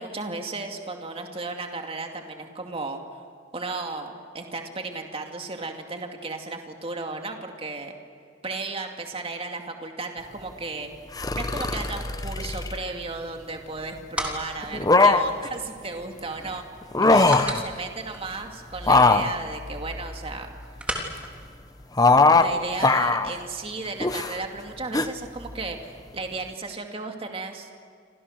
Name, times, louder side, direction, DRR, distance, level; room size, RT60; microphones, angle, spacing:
voice 1, 0.0-3.0 3.5-8.0 8.4-10.9 11.3-16.6 17.1-20.5 22.0-27.7, right 3 dB, 30° right, 3 dB, 2.4 m, -34 dB
sound 1, 11.2-12.8 14.6-15.5 16.8-17.6 18.8-20.6 22.0-22.5 22.8-23.3 24.0-24.4 24.9-25.1, left 3 dB, 20° left, 1.0 m, -20 dB
sound 2, 13.6-22.5, equal, 5° right, 3.4 m, -39 dB
29.5 x 25.5 x 6.6 m, 2.2 s
head